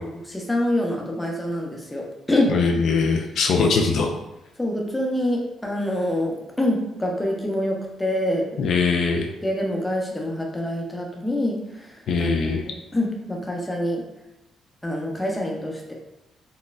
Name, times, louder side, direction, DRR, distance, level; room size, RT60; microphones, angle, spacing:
voice 1, 0.0-2.6 3.7-3.8 4.6-8.5 9.4-12.4 12.6-14.0 14.8-15.9, left 1 dB, 10° left, 0 dB, 0.7 m, -26 dB
voice 2, 2.5-4.1 8.6-9.3 12.1-12.7, left 4 dB, 70° left, 2 dB, 0.3 m, -21 dB
4.0 x 2.1 x 2.4 m, 0.96 s
cardioid pair, 90°, 0 cm